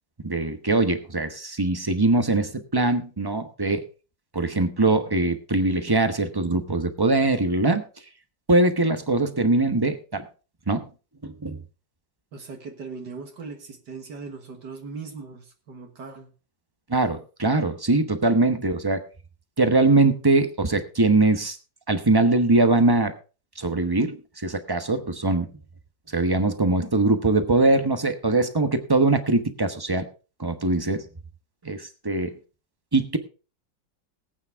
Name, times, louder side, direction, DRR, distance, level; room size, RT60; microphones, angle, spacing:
voice 1, 0.2-3.8 4.3-7.8 8.5-10.3 10.7-10.8 11.2-11.6 16.9-19.0 19.6-21.6 21.9-23.1 23.6-25.5 26.1-30.0 30.4-31.0 31.6-32.3 32.9-33.2, right 2 dB, 20° right, 8 dB, 0.7 m, -22 dB
voice 2, 12.3-16.3, right 4 dB, 65° right, 4 dB, 2.0 m, -39 dB
19.0 x 8.8 x 3.5 m, 0.35 s
omnidirectional pair, 2.0 m